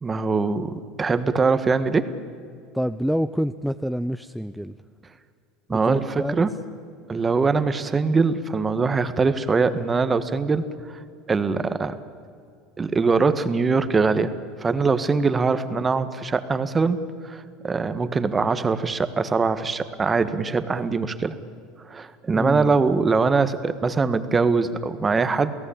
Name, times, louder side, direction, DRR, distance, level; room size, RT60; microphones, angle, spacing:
voice 1, 0.0-2.1 5.7-6.5 7.1-10.7 11.3-12.0 12.8-14.3 14.6-21.3 21.8-25.5, right 4 dB, 20° right, 11 dB, 1.5 m, -22 dB
voice 2, 2.7-4.8 5.7-6.5 22.3-22.8, equal, ahead, 10 dB, 0.6 m, -27 dB
28.5 x 17.5 x 8.8 m, 2.3 s
supercardioid pair, 105°, 0 cm